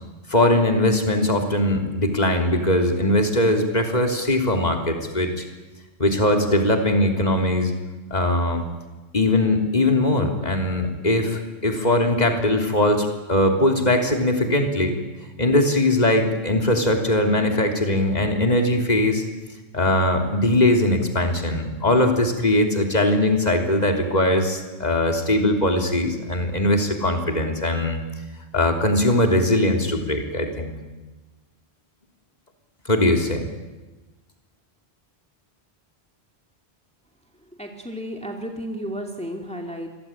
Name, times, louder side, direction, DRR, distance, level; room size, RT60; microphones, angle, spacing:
voice 1, 0.3-5.4 6.0-7.7 8.1-8.6 9.1-15.0 15.4-19.2 19.7-28.0 28.5-30.7 32.9-33.4, left 1 dB, 40° left, 3 dB, 3.6 m, -20 dB
voice 2, 37.6-39.9, equal, 5° left, 2 dB, 2.4 m, -33 dB
28.0 x 23.0 x 8.9 m, 1.2 s
omnidirectional pair, 1.1 m